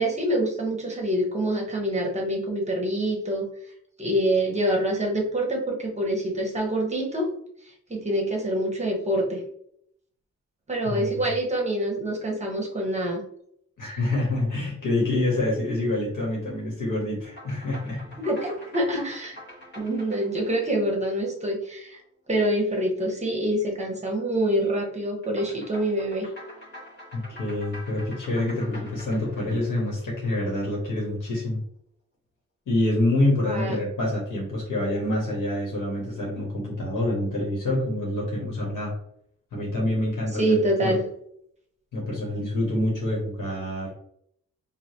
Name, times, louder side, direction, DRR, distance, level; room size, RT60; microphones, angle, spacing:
voice 1, 0.0-3.5 4.0-7.3 7.6-9.4 10.7-13.2 18.2-19.4 19.7-22.0 22.3-26.3 33.5-33.8 40.3-41.1, right 1 dB, 20° right, 0 dB, 1.0 m, -26 dB
voice 2, 10.8-11.2 13.8-18.0 27.1-31.6 32.7-38.9 39.5-40.5 40.8-40.9 41.9-44.0, left 1 dB, 85° left, -3 dB, 1.5 m, -26 dB
sound 1, 17.2-21.9 25.2-30.6, left 1 dB, 35° left, 1.4 m, -46 dB
4.9 x 2.6 x 2.8 m, 0.69 s
wide cardioid pair, 175°, 31 cm